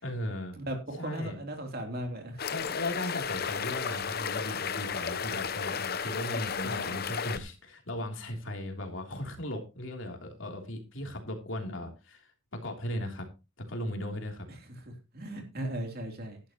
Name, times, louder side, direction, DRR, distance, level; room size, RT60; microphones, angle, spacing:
voice 1, 0.0-0.6 1.0-1.4 2.5-13.3 13.6-14.5, left 1 dB, 60° left, 3 dB, 3.2 m, -37 dB
voice 2, 0.6-2.5 6.6-7.0 14.8-16.4, right 1 dB, 45° right, 4 dB, 3.2 m, -37 dB
sound 1, 2.4-7.4, left 6 dB, 45° left, 0.8 m, -33 dB
13.5 x 11.0 x 3.0 m, 0.28 s
head